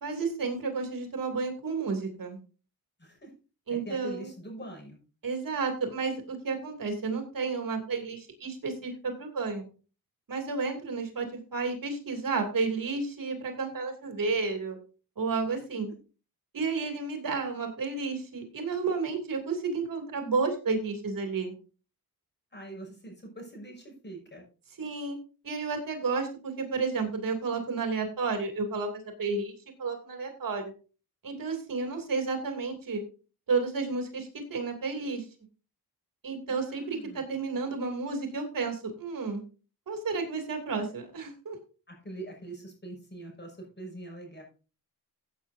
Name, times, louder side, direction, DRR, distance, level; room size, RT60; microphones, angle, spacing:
voice 1, 0.0-2.4 3.7-4.3 5.2-9.6 10.3-14.8 15.2-15.9 16.5-21.5 24.8-25.2 25.4-29.5 29.8-30.7 31.2-33.0 33.5-35.2 36.2-39.4 39.9-41.6, right 4 dB, 65° right, 4 dB, 2.8 m, -31 dB
voice 2, 3.0-3.3 3.7-5.0 15.5-15.6 22.5-24.4 36.5-37.2 41.9-44.4, right 1 dB, 30° left, 0 dB, 6.3 m, -44 dB
16.0 x 8.4 x 2.7 m, 0.35 s
cardioid pair, 80°, 36 cm